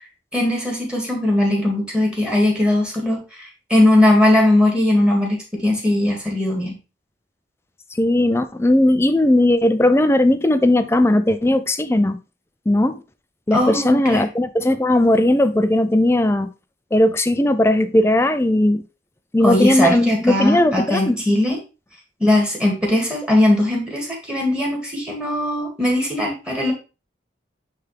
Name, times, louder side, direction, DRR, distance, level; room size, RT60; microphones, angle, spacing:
voice 1, 0.3-6.7 13.5-14.2 19.4-21.6 22.2-26.7, left 1 dB, 5° right, 2.1 m, -19 dB
voice 2, 8.0-12.2 12.7-13.0 13.5-16.5 16.9-18.8 19.3-21.2, left 1 dB, 15° left, 0.4 m, -17 dB
9.4 x 3.4 x 3.4 m
head